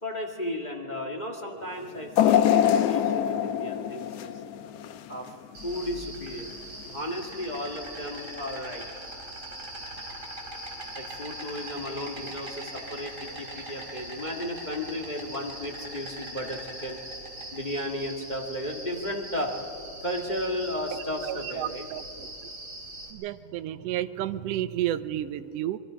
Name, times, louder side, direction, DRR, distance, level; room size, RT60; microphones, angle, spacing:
voice 1, 0.0-4.4 5.1-5.3 5.6-6.5 6.8-8.8 10.9-17.0 17.5-19.5 20.0-21.9, left 1 dB, 20° left, 1 dB, 1.2 m, -34 dB
sound 1, 2.2-5.3 5.7-5.9 6.9-7.0, left 10 dB, 70° left, 1.6 m, -24 dB
Insect, 5.5-23.1, right 1 dB, 25° right, 3.7 m, -41 dB
voice 2, 20.9-22.3 23.1-25.8, right 12 dB, 80° right, 12 dB, 1.5 m, -32 dB
26.0 x 22.5 x 5.1 m, 2.7 s
omnidirectional pair, 3.3 m